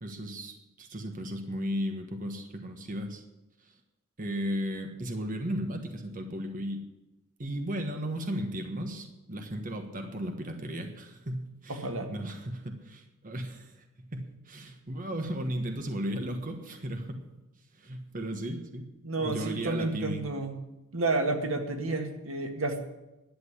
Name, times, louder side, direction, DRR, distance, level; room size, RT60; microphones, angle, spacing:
voice 1, 0.0-3.2 3.6-3.7 4.2-6.8 7.4-17.3 17.7-18.9 19.2-20.2, equal, 40° right, 4 dB, 1.3 m, -35 dB
voice 2, 11.7-12.1 19.0-20.6 20.9-22.8, right 2 dB, 90° right, 4 dB, 1.9 m, -30 dB
11.5 x 7.9 x 9.6 m, 1.0 s
head